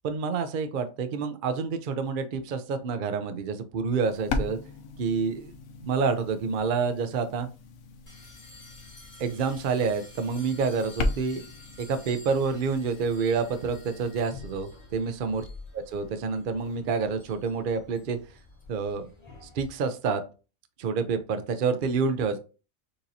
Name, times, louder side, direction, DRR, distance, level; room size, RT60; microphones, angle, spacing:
voice 1, 0.0-4.6 5.0-5.5 5.8-7.5 9.2-11.5 11.8-15.4 15.7-18.2 18.7-19.1 19.4-20.2 20.8-22.4, right 5 dB, 55° right, 8 dB, 0.6 m, -28 dB
sound 1, 4.0-14.2, left 3 dB, 70° left, 1.0 m, -37 dB
sound 2, 8.1-19.7, left 3 dB, 30° left, 2.3 m, -49 dB
6.8 x 2.9 x 2.7 m, 0.33 s
omnidirectional pair, 1.4 m